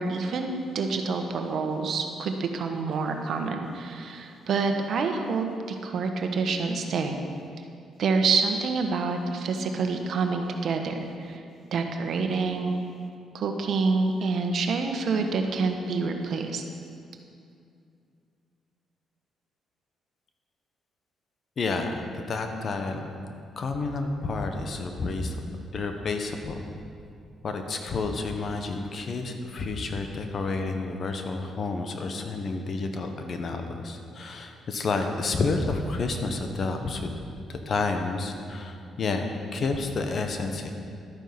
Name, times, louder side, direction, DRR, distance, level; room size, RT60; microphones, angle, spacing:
voice 1, 0.0-5.5 5.8-7.2 8.0-11.4 11.7-12.8 13.3-16.6, right 4 dB, 65° right, 4 dB, 1.3 m, -27 dB
voice 2, 21.6-23.2 23.6-25.4 25.7-26.7 27.4-37.1 37.5-40.7, left 3 dB, 50° left, 5 dB, 1.3 m, -30 dB
12.5 x 9.2 x 6.0 m, 2.4 s
cardioid pair, 90°, 0 cm